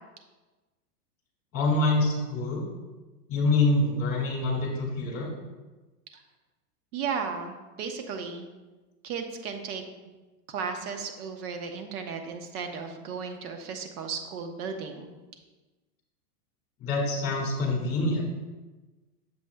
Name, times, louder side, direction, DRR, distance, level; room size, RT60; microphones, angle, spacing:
voice 1, 1.5-2.6 3.3-5.3 16.8-18.2, left 2 dB, 30° left, -1 dB, 2.2 m, -25 dB
voice 2, 6.9-8.5 9.0-9.8 10.5-15.1, right 6 dB, 65° right, 5 dB, 1.1 m, -35 dB
7.5 x 7.3 x 2.3 m, 1.2 s
supercardioid pair, 130°, 48 cm